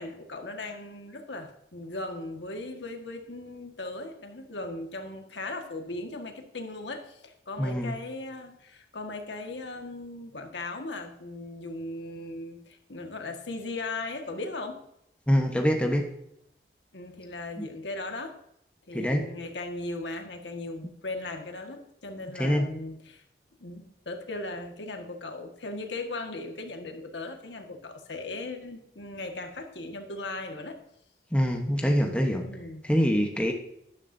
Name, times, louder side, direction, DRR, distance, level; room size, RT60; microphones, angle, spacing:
voice 1, 0.0-14.8 16.9-18.4 18.9-23.2 23.6-30.8 32.5-32.9, left 2 dB, 90° left, 4 dB, 1.7 m, -38 dB
voice 2, 7.6-8.0 15.3-16.1 17.6-17.7 18.9-19.3 22.3-22.7 31.3-32.5 32.8-33.5, equal, 5° left, 2 dB, 1.1 m, -25 dB
12.0 x 10.5 x 2.7 m, 0.77 s
head